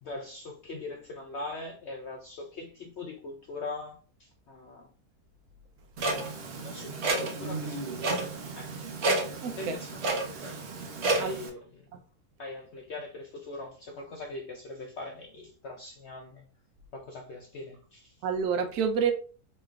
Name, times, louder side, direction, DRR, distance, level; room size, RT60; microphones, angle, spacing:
voice 1, 0.0-4.9 6.0-8.1 8.5-8.8 9.6-10.0 10.4-10.5 11.1-11.9 12.4-16.5 16.9-18.2, left 2 dB, 65° left, 0.6 m, -41 dB
Clock, 6.0-11.5, right 2 dB, 55° right, 0.9 m, -31 dB
voice 2, 9.4-9.7 11.2-11.4 11.9-12.0 18.2-19.1, right 6 dB, 75° right, 1.1 m, -28 dB
4.0 x 3.2 x 2.3 m
omnidirectional pair, 1.7 m